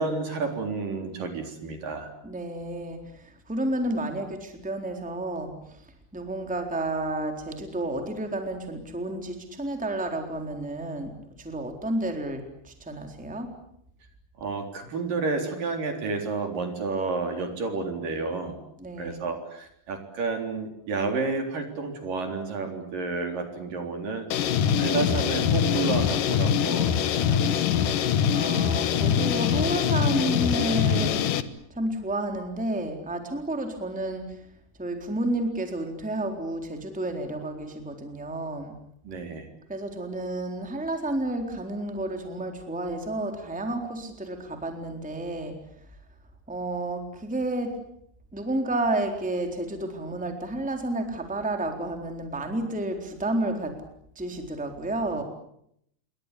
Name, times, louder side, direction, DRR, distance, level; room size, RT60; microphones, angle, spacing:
voice 1, 0.0-2.1 14.4-18.6 19.0-28.1 39.1-39.5, right 3 dB, 55° right, 5 dB, 5.3 m, -31 dB
voice 2, 2.2-5.9 6.1-13.5 18.8-19.2 28.3-31.3 31.7-34.5 34.8-38.7 39.7-45.5 46.5-47.7 48.3-53.8 54.1-55.2, right 1 dB, ahead, 4 dB, 3.4 m, -31 dB
sound 1, 24.3-31.4, left 8 dB, 65° left, 2.5 m, -23 dB
28.5 x 23.5 x 8.4 m, 0.73 s
omnidirectional pair, 4.6 m